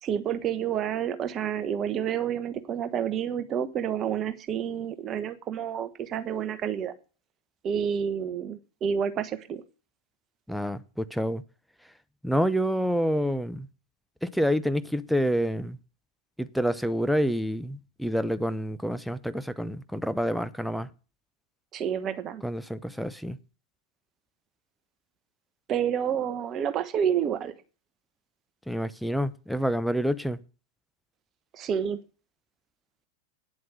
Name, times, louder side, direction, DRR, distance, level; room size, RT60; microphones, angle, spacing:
voice 1, 0.0-6.9 7.6-9.6 21.7-22.4 25.7-27.5 31.5-32.0, right 8 dB, 30° right, 1.2 m, -29 dB
voice 2, 10.5-11.4 12.2-13.7 14.2-15.8 16.4-20.9 22.4-23.4 28.7-30.4, equal, ahead, 0.7 m, -28 dB
9.7 x 7.8 x 8.4 m
figure-of-eight pair, 90°, 0 cm